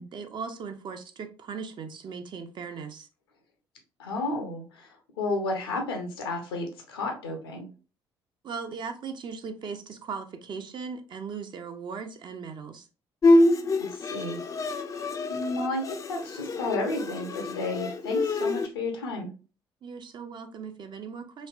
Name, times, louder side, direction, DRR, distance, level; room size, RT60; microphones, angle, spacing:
voice 1, 0.0-3.1 8.4-12.9 19.8-21.5, right 5 dB, 40° right, 0.5 m, -38 dB
voice 2, 4.0-7.7 13.7-14.4 14.9-15.0 15.3-19.3, left 2 dB, 75° left, 0.7 m, -32 dB
Bowed string instrument, 13.2-18.7, left 2 dB, 25° left, 0.4 m, -25 dB
3.2 x 2.8 x 2.3 m
figure-of-eight pair, 50°, 13 cm